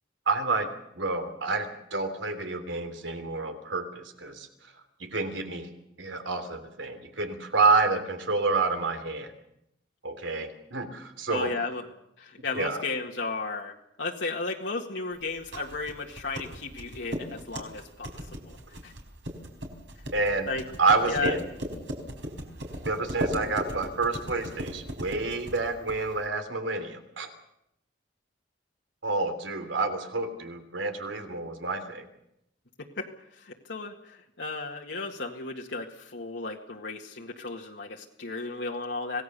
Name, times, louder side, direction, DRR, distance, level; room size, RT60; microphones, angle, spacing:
voice 1, 0.3-0.7 0.9-4.5 5.0-5.7 6.0-9.3 10.0-11.5 12.5-12.8 20.1-20.5 20.8-21.4 22.2-22.3 22.8-27.3 29.0-32.1, right 3 dB, 85° right, 7 dB, 3.3 m, -28 dB
voice 2, 11.3-11.8 12.2-18.6 18.8-18.9 20.5-20.7 21.1-21.3 32.8-39.2, left 3 dB, 70° left, -1 dB, 1.8 m, -34 dB
sound 1, 15.2-26.2, equal, 70° right, 4.5 m, -37 dB
26.5 x 18.0 x 6.8 m, 0.79 s
head